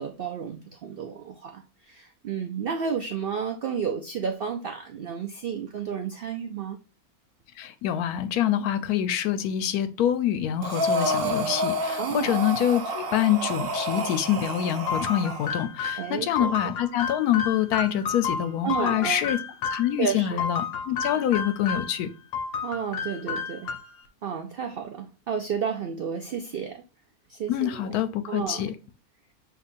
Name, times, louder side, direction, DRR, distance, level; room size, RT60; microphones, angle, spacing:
voice 1, 0.0-6.8 12.0-12.3 16.0-16.5 18.6-19.3 20.0-20.5 22.6-23.7 24.2-26.8 27.3-27.9 28.3-28.7, right 7 dB, 80° right, 0.5 m, -32 dB
voice 2, 7.6-19.4 19.7-22.1 27.5-28.7, left 11 dB, 85° left, 1.1 m, -26 dB
Breathing, 10.6-15.6, right 1 dB, 50° right, 0.8 m, -29 dB
sound 1, 14.9-19.9 20.4-22.0 22.3-24.1, left 6 dB, 60° left, 0.9 m, -31 dB
6.7 x 2.8 x 2.5 m
omnidirectional pair, 1.6 m